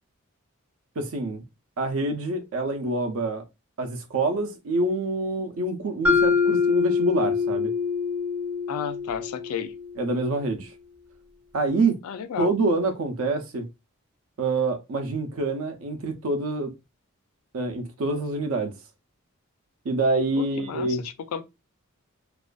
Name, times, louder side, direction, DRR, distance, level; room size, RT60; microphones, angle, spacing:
voice 1, 1.0-1.4 1.8-3.4 3.8-7.7 10.0-10.7 11.5-12.0 12.4-13.7 14.4-16.7 17.5-18.7 19.8-21.0, right 2 dB, 65° right, 0.4 m, -26 dB
Mallet percussion, 6.0-10.1, left 5 dB, 5° right, 0.3 m, -24 dB
voice 2, 8.7-9.7 12.0-12.5 20.4-21.4, left 7 dB, 85° left, 0.4 m, -33 dB
2.4 x 2.2 x 2.3 m
head